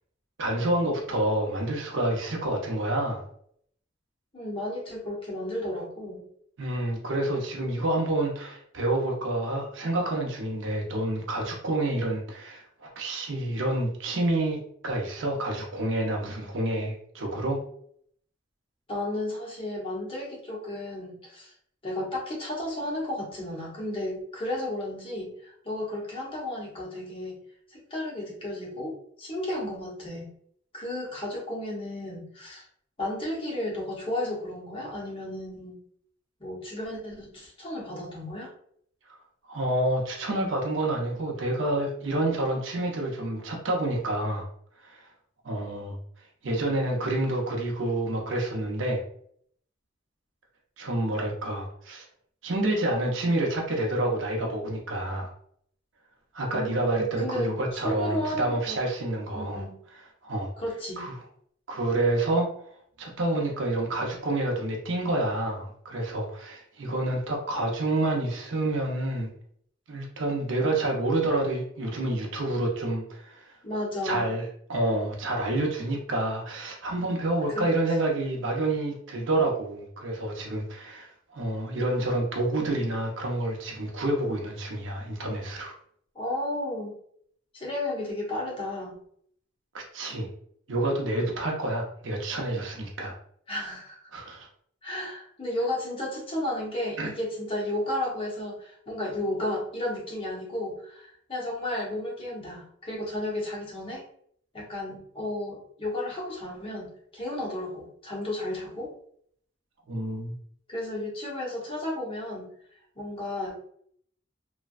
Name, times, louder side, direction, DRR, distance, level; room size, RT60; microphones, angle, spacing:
voice 1, 0.4-3.2 6.6-17.6 39.5-44.5 44.8-45.0 45.4-46.0 46.4-49.0 50.8-52.0 52.4-55.3 56.3-59.6 60.2-60.5 61.0-61.1 61.7-62.5 63.0-69.3 69.9-73.5 74.0-85.7 89.7-90.3 90.7-93.1 94.1-94.5 97.0-97.1 109.9-110.3, right 1 dB, 85° right, 0 dB, 0.7 m, -28 dB
voice 2, 4.3-6.3 18.9-21.5 21.8-27.3 27.7-30.3 30.7-32.7 33.0-35.8 36.4-38.5 56.5-58.8 59.3-59.8 60.6-61.1 73.6-74.3 77.5-77.7 86.1-86.9 87.5-88.9 93.5-94.1 94.8-104.0 104.5-108.9 110.7-112.5 113.0-113.6, left 1 dB, 30° left, -3 dB, 0.9 m, -33 dB
3.2 x 2.1 x 2.4 m, 0.65 s
head